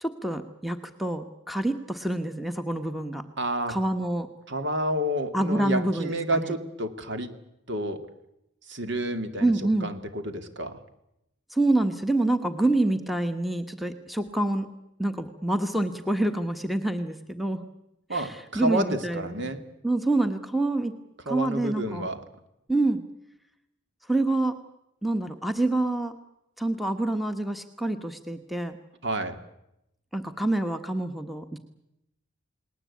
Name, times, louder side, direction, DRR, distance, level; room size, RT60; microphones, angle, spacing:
voice 1, 0.0-3.3 3.7-4.3 5.3-6.5 9.4-9.9 11.5-14.7 15.0-17.7 18.1-19.5 19.8-21.0 21.3-22.1 22.7-23.0 24.1-24.6 25.0-26.1 26.6-28.8 30.1-31.6, right 2 dB, ahead, 8 dB, 1.2 m, -27 dB
voice 2, 3.4-3.8 4.5-7.3 7.7-8.0 8.7-9.5 9.8-10.8 18.1-19.6 21.3-22.2 29.0-29.4, right 1 dB, 55° right, 8 dB, 2.4 m, -29 dB
29.5 x 19.5 x 8.5 m, 0.85 s
head